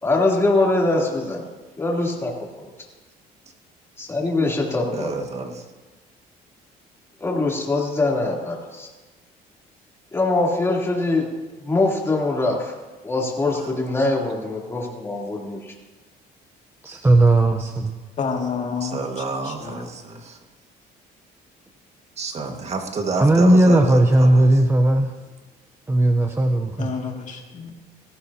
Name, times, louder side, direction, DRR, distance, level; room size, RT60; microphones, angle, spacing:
voice 1, 0.0-1.4 1.8-2.7 4.0-5.1 7.2-8.9 10.1-11.2 11.6-12.7 13.0-15.7, left 2 dB, 15° left, -3 dB, 3.3 m, -23 dB
voice 2, 4.9-5.7 13.5-13.7 18.8-20.4 22.2-24.6, right 3 dB, 40° right, 3 dB, 1.9 m, -29 dB
voice 3, 16.8-18.0 23.2-25.1 25.9-26.9, right 1 dB, 15° right, 4 dB, 0.8 m, -16 dB
voice 4, 18.2-19.0 19.4-19.8 26.8-27.7, left 5 dB, 45° left, 1 dB, 2.4 m, -29 dB
18.0 x 14.5 x 2.9 m, 1.3 s
cardioid pair, 110°, 17 cm